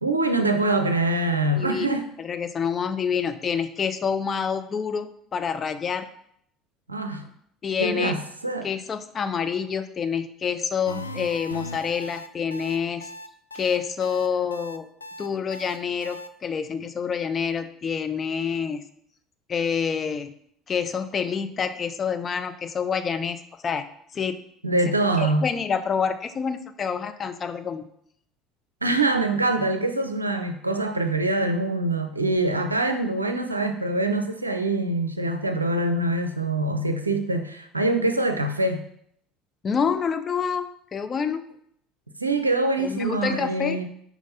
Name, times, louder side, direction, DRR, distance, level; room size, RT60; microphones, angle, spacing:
voice 1, 0.0-2.1 6.9-7.2 7.8-8.7 24.6-25.5 28.8-38.8 42.2-43.8, right 2 dB, 85° right, 7 dB, 0.5 m, -24 dB
voice 2, 1.6-6.1 7.6-8.2 8.6-13.1 13.5-14.9 15.2-18.8 19.5-20.3 20.7-23.8 24.1-24.4 25.2-27.9 39.6-41.4 42.8-43.8, left 6 dB, 35° left, 9 dB, 0.6 m, -27 dB
sound 1, 10.9-16.3, left 2 dB, 85° left, 0.3 m, -38 dB
5.3 x 4.7 x 5.6 m, 0.70 s
figure-of-eight pair, 65°, 0 cm